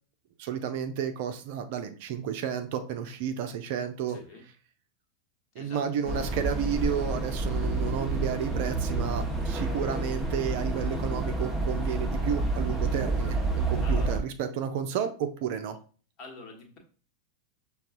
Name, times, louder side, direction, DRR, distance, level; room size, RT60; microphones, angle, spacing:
voice 1, 0.4-4.2 5.6-15.8, right 8 dB, 50° right, 8 dB, 0.5 m, -32 dB
voice 2, 4.1-4.4 5.5-5.8 13.8-14.1 16.2-16.8, left 3 dB, 35° left, 2 dB, 1.3 m, -46 dB
sound 1, 6.1-14.2, right 2 dB, 5° right, 0.8 m, -29 dB
6.5 x 2.3 x 2.5 m, 0.39 s
figure-of-eight pair, 90°, 0 cm